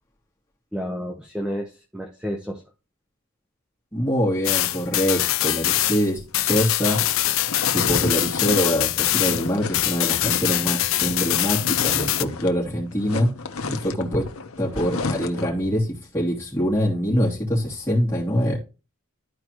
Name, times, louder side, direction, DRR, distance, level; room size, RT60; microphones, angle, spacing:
voice 1, 0.7-2.6, equal, 5° right, 1.0 m, -31 dB
voice 2, 3.9-7.0 7.7-13.3 13.7-14.3 14.6-15.9 16.1-18.6, equal, 15° left, 3.0 m, -24 dB
sound 1, 4.4-9.5 9.7-12.2, left 14 dB, 70° left, 0.5 m, -23 dB
sound 2, 6.3-12.6 12.9-15.6, left 3 dB, 90° left, 1.0 m, -32 dB
12.5 x 4.7 x 3.0 m
head